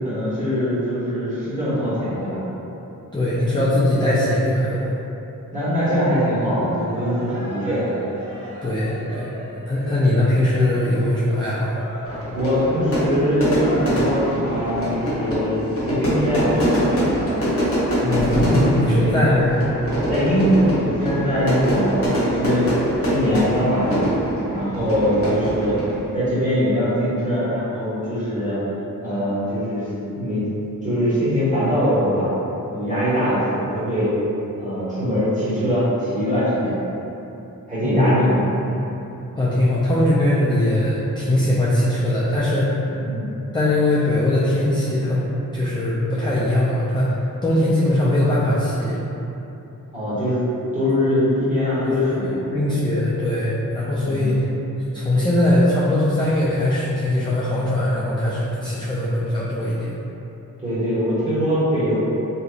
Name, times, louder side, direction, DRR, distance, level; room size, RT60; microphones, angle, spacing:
voice 1, 0.0-2.4 5.5-7.9 12.3-16.5 18.3-19.1 20.1-22.7 23.0-24.0 24.5-25.8 26.1-28.6 29.0-30.5 30.8-32.3 32.7-34.1 34.6-36.8 37.7-38.4 38.7-38.8 42.9-43.3 49.9-50.4 50.7-52.4 54.0-54.4 60.6-62.0, equal, 20° right, -12 dB, 1.4 m, -22 dB
voice 2, 3.1-4.9 8.6-9.3 9.7-11.8 18.0-19.6 21.5-21.9 37.8-38.2 39.4-42.7 43.5-45.2 45.5-47.2 47.4-49.0 51.8-54.5 54.9-59.9, left 1 dB, 15° left, -8 dB, 0.4 m, -20 dB
Cheering, 5.5-15.6, equal, 75° right, 1.2 m, -39 dB
Fire / Fireworks, 12.1-26.1, equal, 40° left, 1.0 m, -23 dB
2.9 x 2.5 x 2.4 m, 2.9 s
cardioid pair, 70°, 34 cm